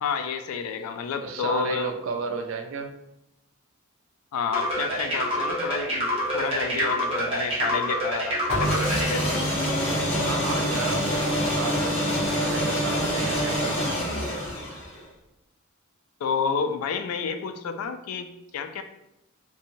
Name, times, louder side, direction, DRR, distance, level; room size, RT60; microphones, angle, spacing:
voice 1, 0.0-1.9 4.3-6.1 6.3-9.2 16.2-18.8, left 6 dB, 85° left, 9 dB, 0.3 m, -30 dB
voice 2, 1.2-2.9 10.2-14.0, right 4 dB, 60° right, 6 dB, 0.3 m, -33 dB
sound 1, 4.5-9.1, equal, 25° right, 0.7 m, -26 dB
sound 2, 8.5-15.0, equal, 30° left, 0.8 m, -26 dB
2.8 x 2.3 x 2.6 m, 0.86 s
head